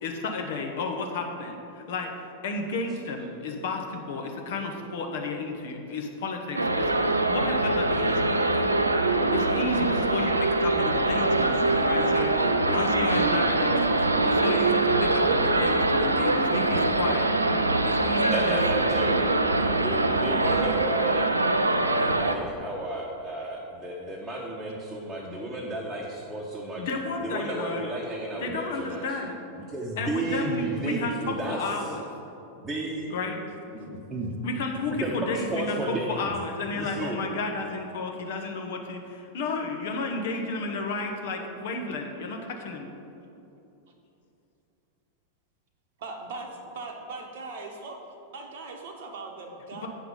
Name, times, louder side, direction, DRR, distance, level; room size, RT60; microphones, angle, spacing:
voice 1, 0.0-8.8 9.3-17.3 17.8-18.6 26.8-27.8 28.4-29.4 30.0-32.0 33.1-33.4 34.4-42.9 49.7-49.9, left 3 dB, 55° left, 3 dB, 0.9 m, -32 dB
sound 1, 6.5-22.3, right 2 dB, 80° right, 0.4 m, -23 dB
voice 2, 18.3-21.2 21.9-26.9 27.2-29.0 29.6-31.6 32.6-33.1 33.7-34.4 34.9-36.4 36.7-37.3, right 2 dB, 10° right, -4 dB, 1.0 m, -32 dB
voice 3, 46.0-46.5 46.7-48.0 48.3-49.9, right 3 dB, 55° right, 3 dB, 0.9 m, -39 dB
8.2 x 5.9 x 5.5 m, 2.8 s
figure-of-eight pair, 90°, 0 cm